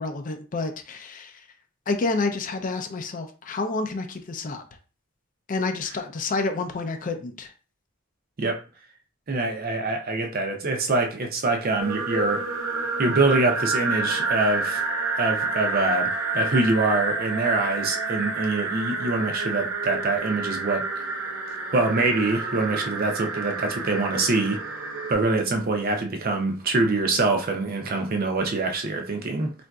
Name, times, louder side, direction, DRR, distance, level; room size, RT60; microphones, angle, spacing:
voice 1, 0.0-1.4 1.9-4.6 5.5-7.5, left 3 dB, 40° left, 0.4 m, -29 dB
voice 2, 9.3-12.4 13.0-14.8 15.2-20.9 21.7-24.6 25.1-29.5, right 3 dB, 45° right, 0.6 m, -24 dB
sound 1, 11.8-25.1, right 3 dB, 85° right, 0.6 m, -29 dB
3.8 x 2.5 x 2.3 m
head